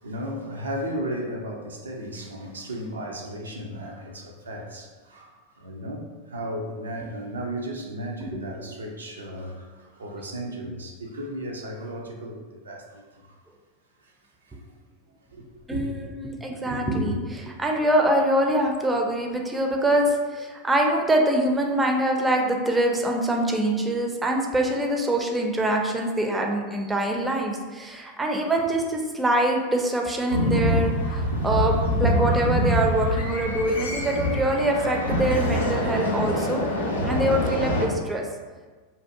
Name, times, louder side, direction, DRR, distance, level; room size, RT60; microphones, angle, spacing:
voice 1, 0.0-13.4 14.0-14.1 14.4-14.6 15.3-15.8, equal, 85° right, 0 dB, 0.4 m, -35 dB
voice 2, 15.7-36.6 37.0-38.3, right 1 dB, 10° right, 1 dB, 0.4 m, -24 dB
sound 1, 30.3-37.8, equal, 85° left, 0.4 m, -25 dB
2.5 x 2.2 x 2.5 m, 1.4 s
hypercardioid pair, 95°, 0 cm